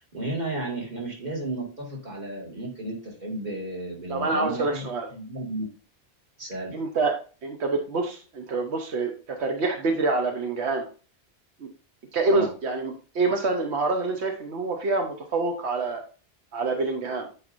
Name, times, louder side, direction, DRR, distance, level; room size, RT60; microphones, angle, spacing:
voice 1, 0.0-5.7 6.4-6.7 12.3-12.5, right 2 dB, 40° right, -3 dB, 2.3 m, -33 dB
voice 2, 4.1-5.1 6.7-7.2 7.4-10.8 11.6-11.7 12.1-16.0 16.5-17.3, right 3 dB, 85° right, 3 dB, 1.2 m, -26 dB
9.1 x 4.7 x 2.6 m, 0.37 s
omnidirectional pair, 1.1 m